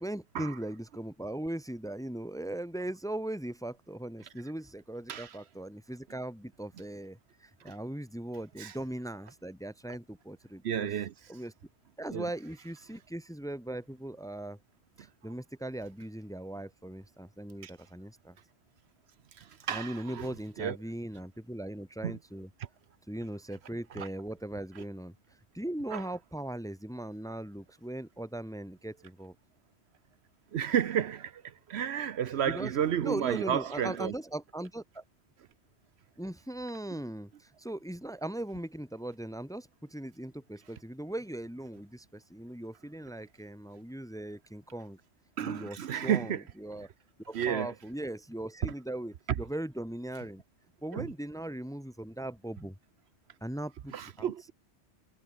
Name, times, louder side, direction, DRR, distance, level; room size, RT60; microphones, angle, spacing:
voice 1, 0.0-10.9 11.3-11.5 12.0-14.6 15.0-18.4 19.7-22.5 23.1-25.1 25.5-29.3 32.5-32.7 33.0-35.0 36.2-45.0 45.4-46.9 47.3-50.4 50.8-52.8 53.4-54.5, right 1 dB, 5° left, 1.0 m, -39 dB
voice 2, 10.6-11.1 12.1-12.2 17.6-17.7 19.4-20.3 20.6-20.8 22.0-22.2 24.0-24.1 25.9-26.0 30.5-34.1 45.4-46.4 47.3-47.7 48.6-48.7 50.9-51.1 53.9-54.5, right 9 dB, 70° right, 0.9 m, -32 dB
omnidirectional pair, 1.2 m